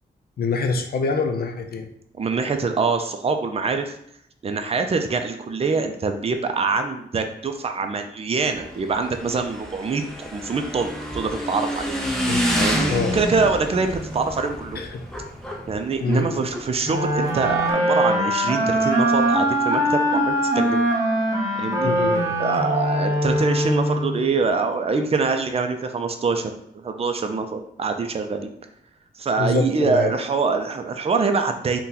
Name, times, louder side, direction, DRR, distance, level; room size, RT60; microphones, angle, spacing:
voice 1, 0.4-1.9 12.0-12.4 12.9-13.3 14.7-15.1 16.0-16.5 21.8-22.3 29.4-30.1, left 4 dB, 60° left, 5 dB, 0.5 m, -25 dB
voice 2, 2.1-4.0 4.4-11.9 12.6-14.8 15.7-20.8 21.6-21.9 22.4-28.5 29.2-31.8, right 4 dB, 35° right, 6 dB, 0.4 m, -24 dB
Motorcycle / Engine, 8.5-17.7, equal, 5° left, 0.6 m, -29 dB
sound 1, 16.8-24.3, equal, 20° right, 1.1 m, -22 dB
2.8 x 2.2 x 3.8 m, 0.72 s
cardioid pair, 65°, 18 cm